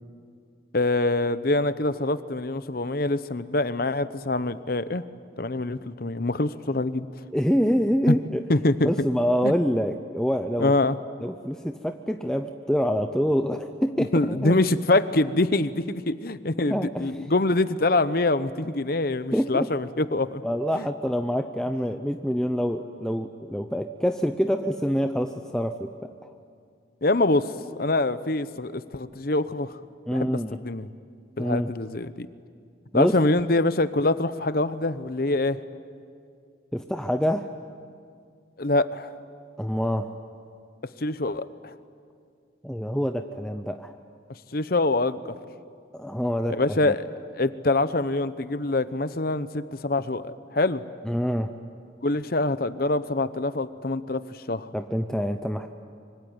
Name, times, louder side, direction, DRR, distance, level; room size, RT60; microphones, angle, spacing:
voice 1, 0.7-5.1 5.4-7.1 8.1-8.2 8.5-8.9 9.4-9.5 10.6-11.0 14.0-20.4 20.8-20.9 27.0-27.5 27.8-29.7 30.1-30.9 31.4-32.3 32.9-35.6 38.6-39.1 41.0-41.7 44.5-45.3 46.5-47.0 47.3-50.8 52.0-54.7, left 2 dB, 50° left, 13 dB, 0.9 m, -25 dB
voice 2, 7.3-8.5 8.8-10.7 11.2-14.5 16.7-17.1 19.3-19.7 20.4-25.9 26.2-26.3 30.1-30.6 31.4-31.7 32.9-33.2 36.7-37.5 39.6-40.2 42.6-44.0 45.9-46.9 51.0-51.5 54.7-55.7, equal, 5° left, 6 dB, 0.7 m, -26 dB
25.5 x 24.5 x 9.6 m, 2.3 s
head